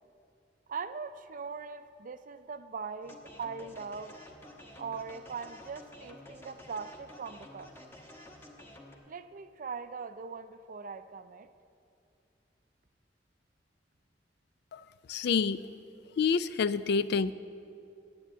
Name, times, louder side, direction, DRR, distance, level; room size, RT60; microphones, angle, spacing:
voice 1, 0.7-4.2 4.8-7.7 9.1-11.5, right 5 dB, 45° right, 12 dB, 0.5 m, -41 dB
sound 1, 3.0-9.0, left 1 dB, 15° left, 1.2 m, -51 dB
voice 2, 15.1-15.6 16.2-17.3, left 5 dB, 65° left, 16 dB, 0.4 m, -27 dB
10.0 x 8.7 x 8.1 m, 2.6 s
head